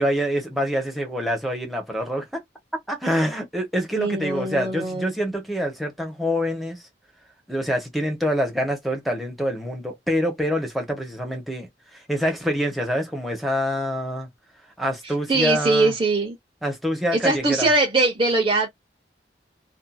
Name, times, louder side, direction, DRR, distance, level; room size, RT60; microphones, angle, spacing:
voice 1, 0.0-2.4 2.9-6.8 7.5-14.3 14.8-15.9 16.6-17.7, equal, ahead, 0.9 m, -26 dB
voice 2, 3.9-5.1 15.0-16.4 17.1-18.7, right 3 dB, 30° right, 0.7 m, -21 dB
2.6 x 2.5 x 2.3 m
head